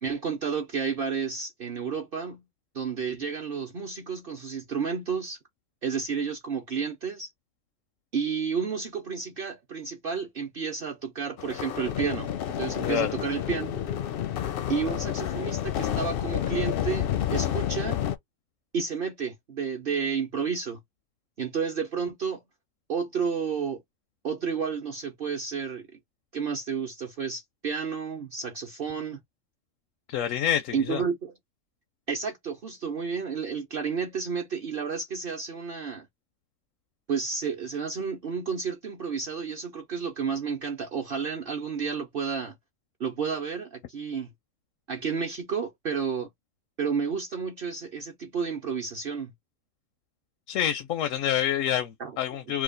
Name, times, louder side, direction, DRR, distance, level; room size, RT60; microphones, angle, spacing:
voice 1, 0.0-2.4 2.7-5.4 5.8-7.3 8.1-13.9 14.7-18.0 18.7-20.8 21.4-22.4 22.9-23.8 24.2-26.0 26.3-29.2 30.7-31.3 32.1-36.1 37.1-42.6 43.0-44.3 44.9-46.3 46.8-49.3 52.0-52.1, right 6 dB, 50° right, 0.9 m, -31 dB
sound 1, 11.4-18.2, left 10 dB, 60° left, 0.6 m, -30 dB
voice 2, 12.8-13.2 30.1-31.0 50.5-52.6, left 10 dB, 85° left, 1.0 m, -27 dB
3.0 x 2.4 x 3.7 m
omnidirectional pair, 1.3 m